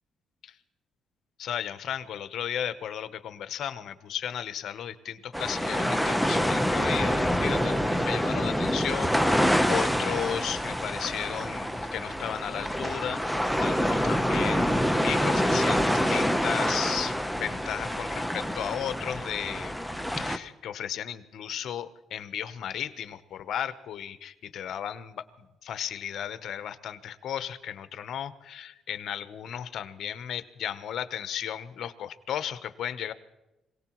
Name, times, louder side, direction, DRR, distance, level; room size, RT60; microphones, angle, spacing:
voice 1, 1.4-19.7 20.1-25.3 25.6-33.1, left 9 dB, 70° left, 11 dB, 0.8 m, -35 dB
sound 1, 5.3-20.4, equal, ahead, 0.8 m, -26 dB
26.5 x 18.0 x 3.0 m, 0.98 s
cardioid pair, 90°, 0 cm